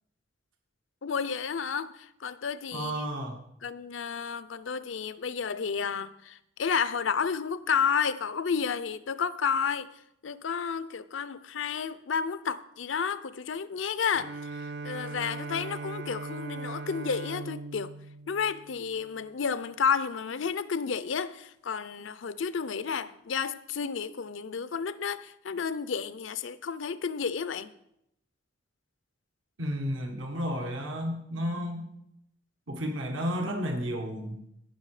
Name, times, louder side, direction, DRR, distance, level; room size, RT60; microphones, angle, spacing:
voice 1, 1.0-3.0 3.6-9.9 10.2-17.9 18.3-27.7, left 6 dB, 75° left, 0.5 m, -31 dB
voice 2, 2.7-3.4 29.6-31.9 32.7-34.4, equal, 85° right, 1.6 m, -32 dB
Bowed string instrument, 14.1-19.4, right 3 dB, 60° right, 0.4 m, -40 dB
16.5 x 5.7 x 4.9 m
head